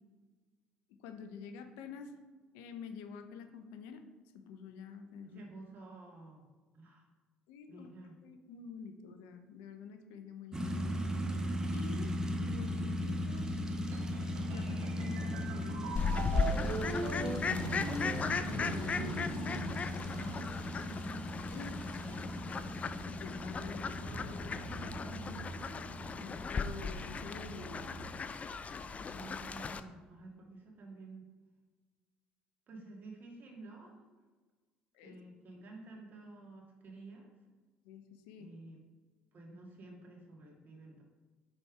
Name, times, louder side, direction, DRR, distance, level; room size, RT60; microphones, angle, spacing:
voice 1, 1.0-2.2 2.5-4.0 4.3-5.4 7.5-10.8 11.7-12.1 12.4-13.6 14.4-17.9 18.5-19.6 21.5-21.7 23.0-25.5 26.2-28.0 34.9-35.2 37.8-38.5, left 6 dB, 75° left, 7 dB, 0.6 m, -48 dB
voice 2, 5.3-6.4 6.7-7.0 7.7-8.2 20.1-21.3 21.5-22.5 29.1-31.3 32.7-34.1 35.0-37.3 38.4-38.8 39.3-41.0, right 2 dB, 50° right, 0 dB, 1.8 m, -51 dB
sound 1, 10.5-28.2, equal, 15° right, 0.9 m, -38 dB
sound 2, 13.9-20.6, right 2 dB, 70° right, 1.1 m, -41 dB
Fowl, 16.0-29.8, left 5 dB, 35° left, 0.4 m, -37 dB
5.2 x 4.3 x 4.8 m, 1.3 s
hypercardioid pair, 65°, 4 cm